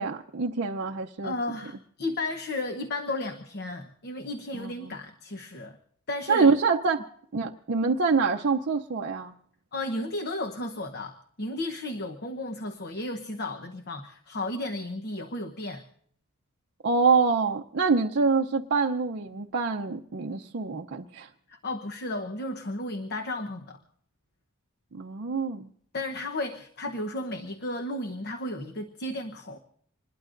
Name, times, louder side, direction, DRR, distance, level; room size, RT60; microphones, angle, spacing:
voice 1, 0.0-1.3 4.5-4.9 6.3-7.0 7.3-9.3 16.8-21.3 24.9-25.7, right 4 dB, 50° right, 2 dB, 0.6 m, -25 dB
voice 2, 1.2-5.8 6.1-6.5 9.7-15.8 21.5-23.8 25.9-29.6, left 2 dB, 50° left, 5 dB, 1.0 m, -34 dB
26.5 x 21.0 x 2.6 m, 0.63 s
head